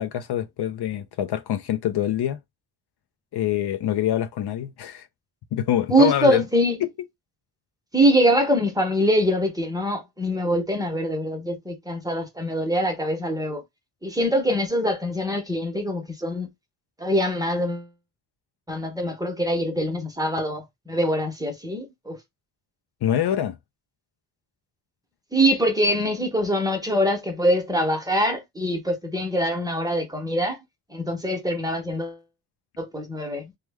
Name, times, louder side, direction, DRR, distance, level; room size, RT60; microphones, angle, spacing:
voice 1, 0.0-2.4 3.3-5.1 5.5-6.4 6.8-6.9 23.0-23.6, left 11 dB, 65° left, 0.5 m, -25 dB
voice 2, 5.9-6.8 7.9-13.6 14.0-16.5 17.0-17.9 18.7-22.2 25.3-30.6 30.9-32.2 32.8-33.5, equal, 10° right, 0.8 m, -23 dB
3.1 x 2.2 x 3.4 m
wide cardioid pair, 135°, 42 cm